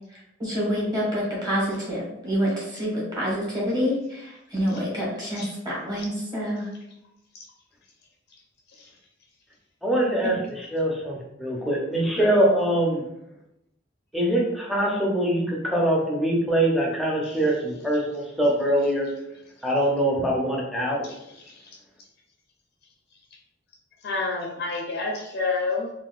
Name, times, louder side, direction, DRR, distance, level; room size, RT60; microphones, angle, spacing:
voice 1, 0.4-6.7, equal, 20° right, -6 dB, 1.3 m, -27 dB
voice 2, 9.8-13.0 14.1-19.1 19.6-21.1, right 1 dB, ahead, -3 dB, 0.6 m, -23 dB
voice 3, 12.2-12.5 21.4-21.8 24.0-25.9, left 3 dB, 60° left, 0 dB, 0.5 m, -30 dB
3.9 x 2.4 x 2.4 m, 0.85 s
head